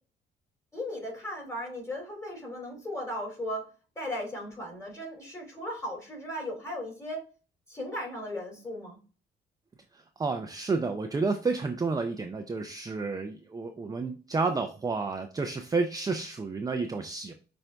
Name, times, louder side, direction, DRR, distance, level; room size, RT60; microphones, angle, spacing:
voice 1, 0.7-3.7 4.0-7.2 7.7-9.0, left 1 dB, 15° left, -1 dB, 2.6 m, -36 dB
voice 2, 9.9-17.3, right 4 dB, 20° right, 5 dB, 0.4 m, -30 dB
5.8 x 2.6 x 3.3 m, 0.36 s
cardioid pair, 90°, 20 cm